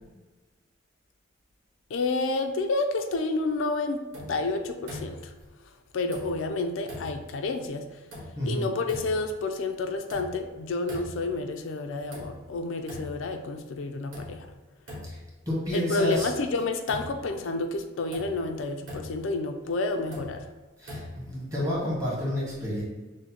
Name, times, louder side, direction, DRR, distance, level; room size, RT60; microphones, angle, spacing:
voice 1, 1.9-4.0 4.3-5.3 5.9-8.0 8.4-14.5 15.7-20.5, left 3 dB, 80° left, 5 dB, 0.4 m, -30 dB
sound 1, 4.1-4.5 4.9-5.4 6.1-6.6 6.9-7.3 8.1-8.5 8.9-9.3 10.1-10.6 10.9-11.4 12.1-12.6 12.9-13.3 14.1-14.5 14.9-15.4 16.1-16.5 16.9-17.4 18.1-18.5 18.9-19.3 20.1-20.5 20.9-21.4, left 1 dB, 80° right, 1.3 m, -41 dB
voice 2, 15.5-16.3 20.8-22.8, equal, 15° right, -6 dB, 1.3 m, -30 dB
6.2 x 2.1 x 2.8 m, 1.2 s
head